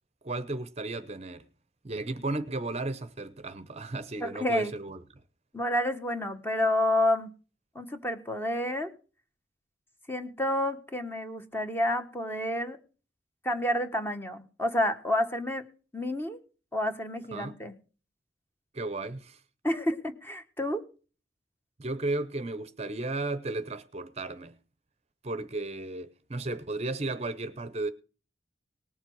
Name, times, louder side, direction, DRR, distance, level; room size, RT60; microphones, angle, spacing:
voice 1, 0.2-1.5 1.8-5.0 17.3-17.6 18.7-19.4 21.8-24.6 25.2-27.9, right 2 dB, 35° right, 0.8 m, -34 dB
voice 2, 4.2-4.7 5.5-7.3 7.7-8.9 10.1-12.8 13.4-15.6 15.9-16.4 16.7-17.7 19.6-20.8, left 1 dB, 10° left, 1.4 m, -29 dB
19.0 x 7.2 x 4.7 m
head